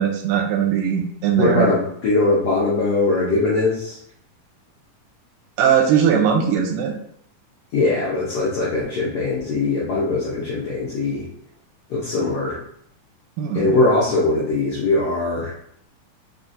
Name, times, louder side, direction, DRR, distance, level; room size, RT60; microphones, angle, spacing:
voice 1, 0.0-1.7 5.6-6.9 13.4-13.7, right 8 dB, 85° right, 3 dB, 2.3 m, -19 dB
voice 2, 1.4-4.0 7.7-11.3 11.9-12.6 13.5-15.5, left 2 dB, 75° left, -7 dB, 1.4 m, -21 dB
5.7 x 2.4 x 2.6 m, 0.67 s
omnidirectional pair, 3.7 m